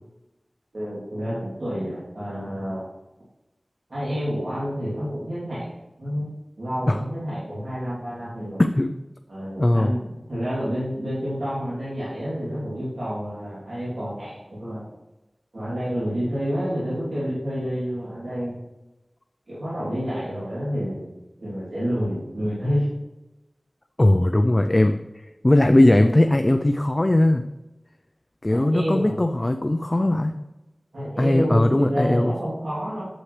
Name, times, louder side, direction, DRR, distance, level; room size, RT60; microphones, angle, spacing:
voice 1, 0.7-2.9 3.9-6.3 6.6-8.6 9.3-14.9 15.5-18.6 19.5-21.1 21.4-22.9 28.5-29.2 30.9-33.0, equal, 85° right, -10 dB, 3.1 m, -29 dB
voice 2, 8.6-8.9 9.6-9.9 24.0-25.0 25.4-27.4 28.4-30.3 31.2-32.3, left 1 dB, 35° left, 7 dB, 0.5 m, -19 dB
8.9 x 7.9 x 3.3 m, 1.0 s
wide cardioid pair, 45°, 0 cm